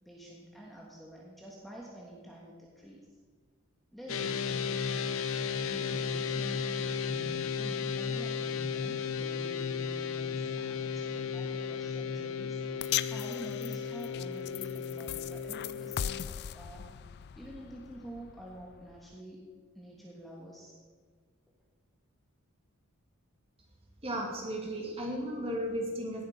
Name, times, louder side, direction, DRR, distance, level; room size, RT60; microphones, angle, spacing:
voice 1, 0.0-3.0 3.9-4.8 5.6-16.9 17.4-19.4 19.7-20.7, equal, ahead, -3 dB, 1.5 m, -48 dB
sound 1, 4.1-16.2, left 6 dB, 70° left, 0.7 m, -34 dB
sound 2, 12.8-19.2, left 11 dB, 50° left, 0.3 m, -39 dB
voice 2, 24.0-26.2, equal, 25° right, 0 dB, 2.4 m, -35 dB
17.5 x 7.8 x 5.2 m, 1.5 s
head